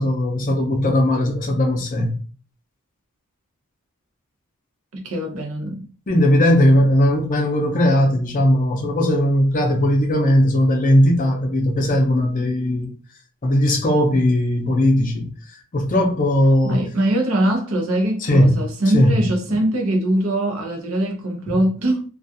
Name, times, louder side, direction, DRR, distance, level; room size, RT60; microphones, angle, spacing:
voice 1, 0.0-2.2 6.1-12.9 13.4-15.3 15.7-16.8 18.2-18.6 18.9-19.3 21.5-21.6, left 1 dB, 40° left, 0.5 m, -18 dB
voice 2, 4.9-5.8 16.6-22.0, right 1 dB, 70° right, 0.7 m, -22 dB
2.3 x 2.3 x 2.7 m
head